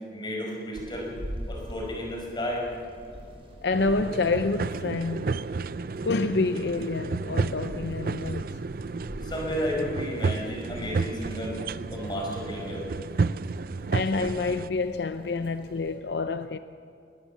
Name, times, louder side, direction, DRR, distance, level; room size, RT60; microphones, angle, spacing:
voice 1, 0.1-1.1 1.5-2.7 9.2-11.6 11.9-12.9, equal, 25° left, 5.5 m, -32 dB
sound 1, 0.7-16.0, equal, 30° right, 4.5 m, -45 dB
voice 2, 3.6-5.3 6.0-8.5 13.8-16.6, left 3 dB, 75° left, 0.6 m, -28 dB
sound 2, 3.7-14.7, right 4 dB, 55° right, 0.4 m, -32 dB
21.0 x 20.5 x 7.4 m
head